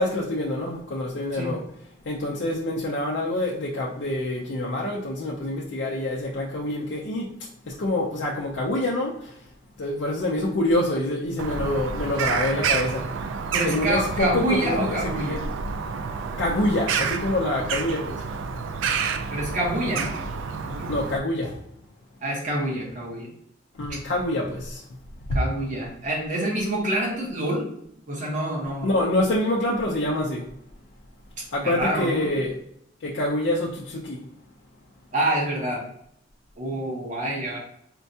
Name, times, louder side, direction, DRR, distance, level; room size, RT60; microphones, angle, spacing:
voice 1, 0.0-1.6 2.0-7.3 7.7-9.4 9.8-13.1 13.6-15.4 16.4-18.2 20.9-21.6 23.8-24.8 28.8-30.5 31.5-32.6 33.0-34.2, left 1 dB, 65° left, -4 dB, 0.5 m, -26 dB
Bird vocalization bird call bird song, 11.4-21.2, right 5 dB, 90° right, 0.3 m, -29 dB
voice 2, 13.5-15.4 19.3-20.2 20.6-20.9 22.2-23.3 25.3-27.7 28.1-28.9 31.6-32.4 35.1-35.9 36.6-37.6, right 1 dB, 40° right, -4 dB, 1.0 m, -27 dB
4.4 x 2.2 x 2.6 m, 0.70 s
head